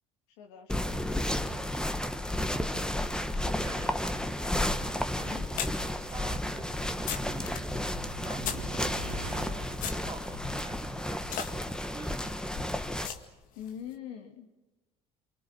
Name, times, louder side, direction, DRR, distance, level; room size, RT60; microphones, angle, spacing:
voice 1, 0.4-1.1 3.4-4.4 5.2-5.5 13.5-14.5, left 9 dB, 80° left, 3 dB, 3.1 m, -45 dB
sound 1, 0.7-13.1, left 1 dB, 5° left, 1.6 m, -32 dB
voice 2, 3.6-4.1 4.8-7.7 8.2-8.5 9.8-12.6, right 3 dB, 25° right, 3 dB, 3.4 m, -47 dB
sound 2, 5.6-9.1 9.8-13.7, left 8 dB, 65° left, 2.1 m, -40 dB
sound 3, 6.0-10.8 11.1-11.2, right 2 dB, 90° right, 2.6 m, -44 dB
28.5 x 24.0 x 6.2 m, 1.1 s
supercardioid pair, 80°, 15 cm